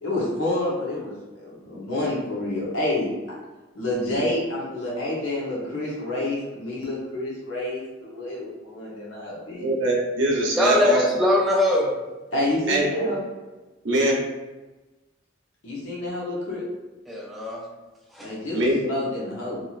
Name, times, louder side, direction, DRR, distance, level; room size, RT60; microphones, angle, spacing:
voice 1, 0.0-3.1 3.7-9.6 12.3-13.2 15.6-16.6 18.2-19.6, left 1 dB, 85° left, -6 dB, 0.8 m, -28 dB
voice 2, 9.6-11.0 12.7-13.1 13.8-14.2 18.5-18.9, right 1 dB, 65° right, -2 dB, 0.7 m, -22 dB
voice 3, 10.6-11.9 17.1-17.6 18.1-18.3, left 1 dB, ahead, -3 dB, 0.3 m, -21 dB
3.0 x 2.6 x 2.4 m, 1.2 s
head